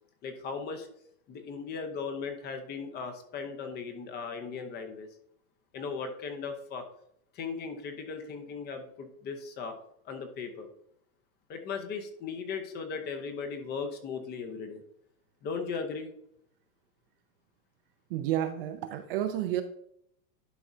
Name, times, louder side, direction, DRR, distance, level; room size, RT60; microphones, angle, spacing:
voice 1, 0.2-0.9 1.3-5.1 5.7-6.8 7.3-9.7 10.0-10.7 11.5-14.8 15.4-16.1, left 5 dB, 20° left, 7 dB, 0.8 m, -37 dB
voice 2, 18.1-19.6, right 12 dB, 40° right, 8 dB, 0.5 m, -30 dB
11.5 x 4.7 x 2.7 m, 0.71 s
supercardioid pair, 145°, 45 cm